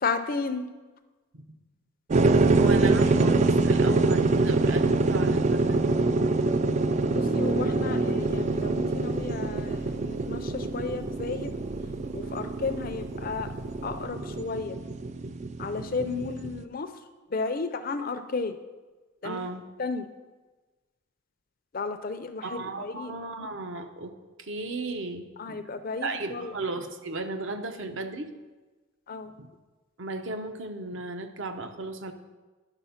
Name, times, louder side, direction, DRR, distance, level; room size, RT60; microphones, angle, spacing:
voice 1, 0.0-0.7 7.1-11.5 12.1-13.5 13.8-14.8 15.6-16.9 17.3-18.6 19.2-19.4 19.8-20.1 21.7-23.1 25.4-26.5 29.1-29.3, left 4 dB, 40° left, 10 dB, 0.5 m, -33 dB
sound 1, 2.1-16.6, right 3 dB, 35° right, 0.3 m, -25 dB
voice 2, 2.5-5.8 19.2-19.6 22.4-24.1 24.4-25.6 26.0-28.3 29.4-29.5 30.0-32.1, right 2 dB, 60° right, 7 dB, 0.7 m, -34 dB
sound 2, 8.1-14.1, equal, 75° right, 1.3 m, -46 dB
11.0 x 4.3 x 5.7 m, 1.2 s
head